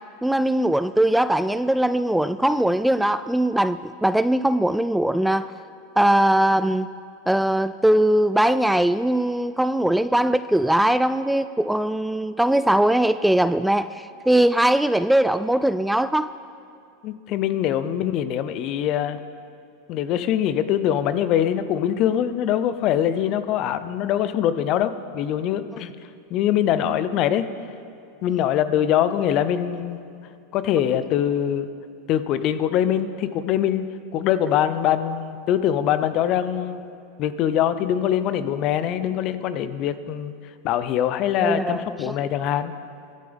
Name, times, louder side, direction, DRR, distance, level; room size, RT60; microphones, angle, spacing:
voice 1, 0.2-5.5 6.0-6.9 7.3-16.3 41.4-41.8, right 1 dB, 5° right, 13 dB, 0.3 m, -20 dB
voice 2, 17.0-19.2 19.9-25.9 26.3-27.5 28.2-30.0 30.5-31.7 32.1-33.9 34.1-36.9 37.2-40.3 40.6-42.7, left 10 dB, 50° left, 13 dB, 0.8 m, -23 dB
24.0 x 9.5 x 3.6 m, 2.5 s
hypercardioid pair, 90°, 0 cm